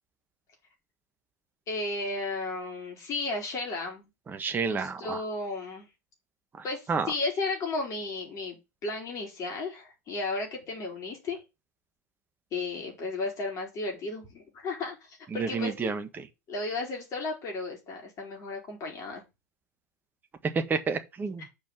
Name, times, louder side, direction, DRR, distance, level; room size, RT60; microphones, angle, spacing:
voice 1, 1.7-4.1 4.7-5.9 6.6-11.4 12.5-15.9 16.5-19.2, left 3 dB, 35° left, 4.7 m, -34 dB
voice 2, 4.3-5.2 6.9-7.1 15.3-16.3 20.5-21.4, right 5 dB, 20° right, 1.6 m, -30 dB
7.0 x 5.2 x 6.0 m
figure-of-eight pair, 85°, 9 cm